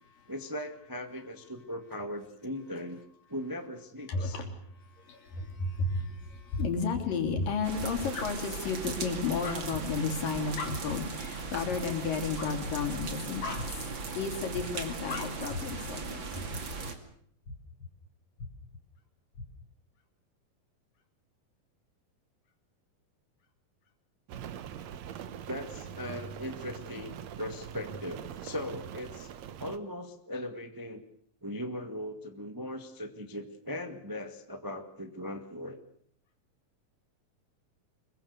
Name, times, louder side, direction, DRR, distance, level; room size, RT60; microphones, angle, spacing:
voice 1, 0.3-3.0 3.3-4.4 25.5-29.3 29.6-31.0 31.4-35.8, left 1 dB, 15° right, 6 dB, 0.8 m, -39 dB
voice 2, 4.1-16.5, left 4 dB, 70° left, 5 dB, 4.8 m, -33 dB
sound 1, 7.6-16.9, right 4 dB, 35° right, 2.7 m, -38 dB
sound 2, 9.7-10.1 10.7-11.1 11.7-12.1 12.6-13.0 13.6-14.0 14.5-14.9 15.5-15.9 16.5-16.9 17.4-17.9 18.4-18.8 19.3-19.4, left 3 dB, 35° left, 4.2 m, -41 dB
Rain, 24.3-29.8, right 8 dB, 65° right, 2.0 m, -42 dB
25.5 x 22.5 x 6.8 m, 0.62 s
omnidirectional pair, 4.0 m